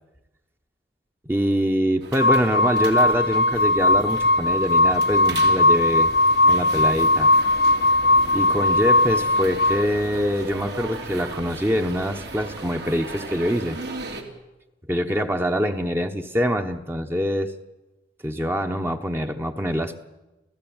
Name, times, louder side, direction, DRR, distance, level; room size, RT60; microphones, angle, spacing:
voice 1, 1.2-6.1 6.5-7.3 8.3-13.8 14.9-17.5 18.2-19.9, equal, 15° right, 5 dB, 1.0 m, -24 dB
sound 1, 2.0-14.2, right 2 dB, 65° right, 3.2 m, -36 dB
sound 2, 2.2-9.8, left 2 dB, 70° left, 0.8 m, -19 dB
27.0 x 16.5 x 8.9 m, 1.0 s
head